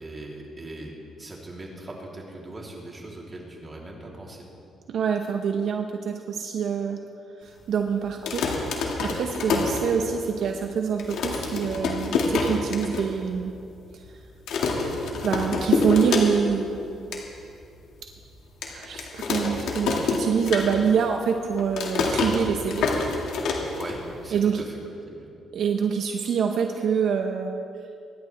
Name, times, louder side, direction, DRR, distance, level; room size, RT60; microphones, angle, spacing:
voice 1, 0.0-4.5 23.8-24.8 25.1-25.3, right 1 dB, 25° right, -3 dB, 3.4 m, -40 dB
voice 2, 4.9-7.0 7.4-13.5 13.9-14.0 15.2-17.1 18.7-22.9 24.3-24.6 25.5-27.6, right 7 dB, 70° right, 4 dB, 0.9 m, -26 dB
sound 1, 8.1-10.4 10.7-10.8 11.0-13.0 13.4-13.5 13.7-14.1 14.5-16.6 16.9-17.2 17.7-17.8 18.6-21.1 21.3-24.3, left 4 dB, 80° left, 2.2 m, -26 dB
24.5 x 11.5 x 3.5 m, 2.6 s
cardioid pair, 90°, 0 cm